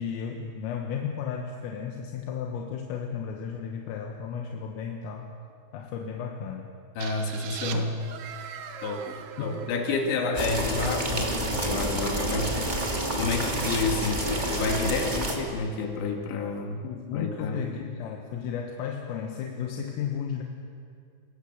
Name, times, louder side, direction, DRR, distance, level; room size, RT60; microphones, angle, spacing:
voice 1, 0.0-5.3 5.7-6.7 9.5-9.6 16.8-20.4, left 7 dB, 85° left, 2 dB, 4.0 m, -34 dB
voice 2, 7.0-8.1 8.8-12.6 13.1-16.9 17.1-17.6, left 3 dB, 65° left, 2 dB, 4.4 m, -30 dB
sound 1, 7.0-10.7, right 8 dB, 85° right, 3.9 m, -40 dB
sound 2, 10.3-15.3, right 1 dB, 20° right, 1.2 m, -28 dB
26.5 x 20.0 x 7.4 m, 2.3 s
omnidirectional pair, 5.7 m